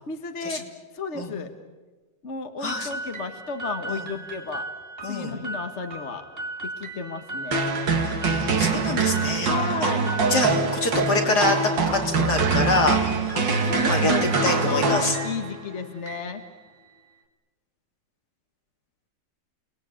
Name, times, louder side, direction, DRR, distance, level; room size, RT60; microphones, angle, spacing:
voice 1, 0.1-0.6 0.9-1.5 2.2-4.7 5.1-6.2 6.6-7.6 9.4-10.1 13.3-14.2 14.6-16.4, left 4 dB, 40° left, 6 dB, 1.5 m, -32 dB
sound 1, 2.7-17.1, right 2 dB, 30° right, 3.0 m, -38 dB
voice 2, 5.0-5.4 8.0-9.5 9.8-9.9 10.3-13.4 13.9-15.2, left 2 dB, 60° left, 2 dB, 3.7 m, -26 dB
sound 2, 7.5-15.6, right 4 dB, 85° right, 2.6 m, -24 dB
29.5 x 20.0 x 8.8 m, 1.3 s
omnidirectional pair, 2.0 m